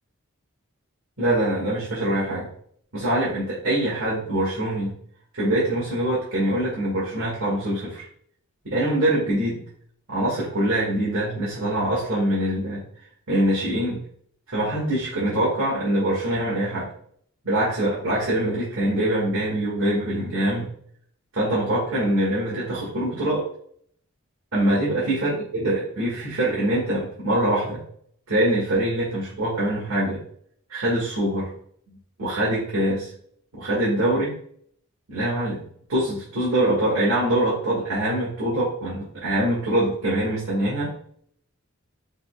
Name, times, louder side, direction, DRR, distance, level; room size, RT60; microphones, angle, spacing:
voice 1, 1.2-2.5 2.9-4.9 5.3-8.0 8.7-9.6 10.1-12.8 13.3-14.0 14.5-16.9 17.4-20.7 21.3-23.4 24.5-27.8 28.3-30.2 30.7-31.5 31.9-33.1 33.5-34.4 35.1-35.6 35.9-41.0, right 1 dB, 80° right, -8 dB, 1.8 m, -24 dB
5.2 x 4.0 x 2.2 m, 0.62 s
head